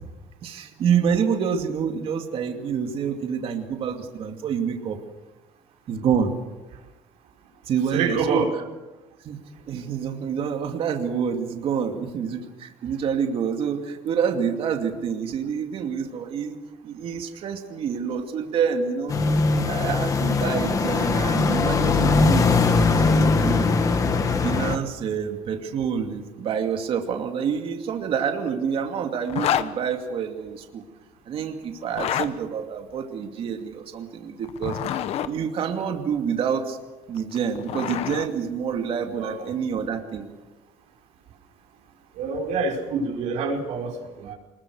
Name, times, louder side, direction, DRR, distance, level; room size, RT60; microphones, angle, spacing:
voice 1, 0.4-5.0 5.9-6.3 7.7-8.5 9.2-9.4 9.7-16.6 16.8-19.1 19.6-23.7 24.4-30.8 31.3-36.8 37.1-40.3, right 7 dB, 50° right, 4 dB, 2.5 m, -27 dB
voice 2, 7.9-8.5 39.0-39.5 42.1-44.3, right 4 dB, 80° right, 0 dB, 5.2 m, -27 dB
sound 1, 19.1-24.8, left 4 dB, 25° left, 1.7 m, -21 dB
Zipper (clothing), 29.3-29.7 31.8-32.3 34.4-35.3 37.2-38.3, left 10 dB, 55° left, 1.2 m, -27 dB
25.5 x 21.5 x 6.5 m, 1.1 s
cardioid pair, 155°, 12 cm